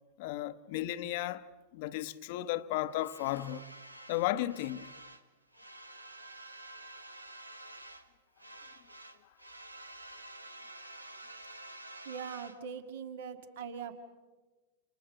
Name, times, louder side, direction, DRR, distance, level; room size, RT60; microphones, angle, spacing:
voice 1, 0.2-1.4 1.7-3.7 4.1-4.9, left 15 dB, 50° left, 1.0 m, -34 dB
sound 1, 2.9-5.3 5.5-8.1 8.4-12.6, right 2 dB, 85° right, 1.2 m, -50 dB
voice 2, 12.0-13.9, right 7 dB, 60° right, 2.1 m, -41 dB
29.0 x 29.0 x 5.3 m
figure-of-eight pair, 90°, 0 cm